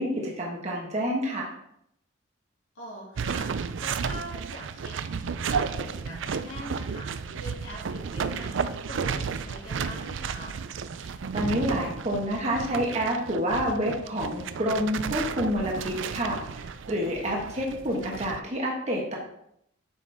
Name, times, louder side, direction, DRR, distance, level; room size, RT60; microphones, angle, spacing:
voice 1, 0.0-1.5 11.0-19.2, equal, 35° right, -2 dB, 1.3 m, -28 dB
voice 2, 2.7-5.0 5.4-7.1 7.3-10.6, equal, 85° left, -4 dB, 2.7 m, -42 dB
sound 1, 3.2-18.4, right 6 dB, 70° right, 0.4 m, -33 dB
8.2 x 6.1 x 3.5 m, 0.74 s
head